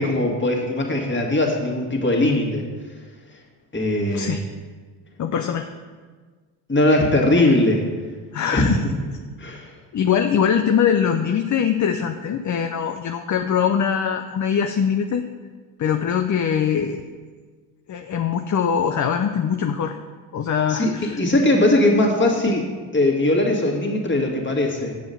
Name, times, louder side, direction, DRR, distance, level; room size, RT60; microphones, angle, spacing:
voice 1, 0.0-2.6 3.7-4.4 6.7-7.8 8.5-8.7 9.4-9.7 20.7-22.7 22.9-24.9, left 1 dB, 25° left, -1 dB, 1.9 m, -20 dB
voice 2, 4.1-4.4 5.2-5.7 7.4-7.5 8.3-8.8 9.9-15.2 15.8-17.0 17.9-20.0 20.3-21.2, left 7 dB, 40° left, 6 dB, 0.6 m, -22 dB
7.1 x 5.1 x 6.9 m, 1.5 s
supercardioid pair, 60°, 48 cm